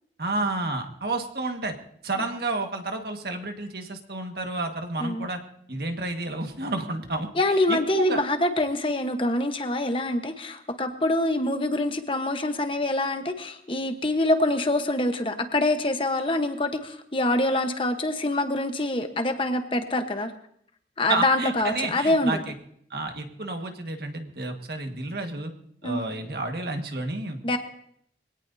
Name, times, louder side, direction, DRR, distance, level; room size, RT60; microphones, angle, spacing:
voice 1, 0.2-1.8 2.0-5.4 5.7-7.3 7.7-8.2 21.1-22.5 22.9-25.5 25.8-27.4, right 2 dB, 65° right, 4 dB, 1.7 m, -30 dB
voice 2, 7.4-20.3 21.0-22.4 25.8-26.0 27.4-27.6, left 1 dB, 30° left, 6 dB, 1.1 m, -25 dB
23.0 x 17.5 x 2.8 m, 0.67 s
head